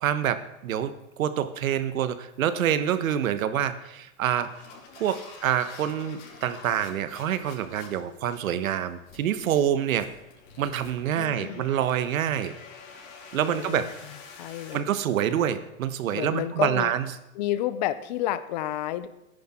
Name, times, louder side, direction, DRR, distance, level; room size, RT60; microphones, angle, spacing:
voice 1, 0.0-4.6 5.0-10.1 10.6-12.5 13.3-13.9 14.7-17.1, right 10 dB, 75° right, 12 dB, 1.5 m, -27 dB
sound 1, 1.0-1.2 1.6-1.8 2.3-2.6 3.2-3.4 4.0-14.8, left 5 dB, 60° left, 4.4 m, -48 dB
voice 2, 11.2-11.7 13.4-13.9 14.4-14.8 16.1-16.9 17.4-19.1, left 13 dB, 30° left, 13 dB, 0.6 m, -30 dB
14.0 x 10.5 x 4.5 m, 0.92 s
supercardioid pair, 170°, 41 cm